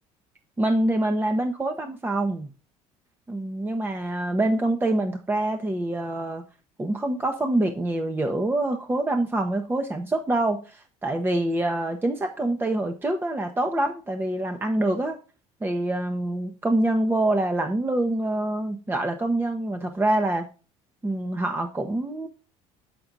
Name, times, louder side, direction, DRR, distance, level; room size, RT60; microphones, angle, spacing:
voice 1, 0.6-2.5 3.3-6.4 6.8-15.2 15.6-20.5 21.0-22.3, right 1 dB, 15° right, 5 dB, 0.9 m, -25 dB
6.8 x 6.1 x 3.9 m, 0.34 s
cardioid pair, 105°, 14 cm